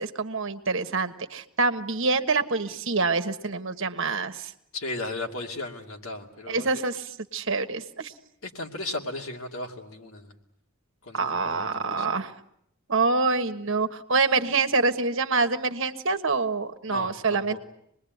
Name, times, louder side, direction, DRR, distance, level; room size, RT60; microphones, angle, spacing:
voice 1, 0.0-4.5 6.5-8.1 11.1-12.3 12.9-17.6, right 4 dB, 60° right, 8 dB, 1.4 m, -26 dB
voice 2, 4.7-6.7 8.4-10.3 11.1-12.1 16.9-17.6, left 2 dB, 70° left, 2 dB, 2.7 m, -36 dB
26.5 x 20.5 x 9.4 m, 0.75 s
head